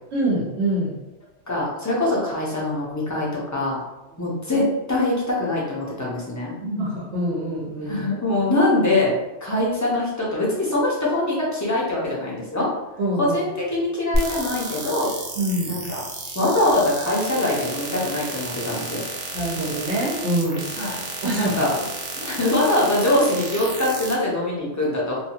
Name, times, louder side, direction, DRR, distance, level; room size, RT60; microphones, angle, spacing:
voice 1, 0.1-0.9 4.1-4.4 6.6-8.0 13.0-13.3 15.4-15.8 19.3-20.6 21.2-21.6, right 1 dB, 70° right, -4 dB, 1.0 m, -25 dB
voice 2, 1.5-3.8 4.2-6.5 7.8-9.1 9.4-12.7 13.2-15.1 15.7-16.0 16.3-19.0 20.8-21.0 21.3-21.7 22.2-25.2, left 1 dB, 20° left, -6 dB, 0.5 m, -23 dB
sound 1, 14.1-24.1, right 2 dB, 55° right, 0.5 m, -31 dB
2.7 x 2.3 x 2.8 m, 1.0 s
omnidirectional pair, 1.2 m